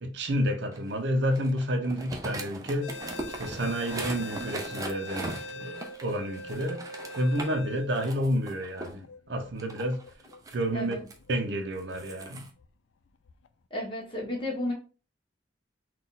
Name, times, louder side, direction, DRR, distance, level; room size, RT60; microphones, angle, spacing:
voice 1, 0.0-3.0 3.4-6.9 7.2-10.0 10.5-11.0 11.3-12.4, equal, 65° right, 0.7 m, -30 dB
sound 1, 0.7-7.6 7.9-9.0 9.6-11.1 11.8-12.5, right 2 dB, 20° right, 0.6 m, -39 dB
sound 2, 2.8-12.0 12.6-12.7 13.3-13.5, left 1 dB, 85° left, 0.4 m, -43 dB
voice 2, 10.7-11.0 13.7-14.7, left 1 dB, 25° left, 1.4 m, -32 dB
4.0 x 2.4 x 3.9 m
head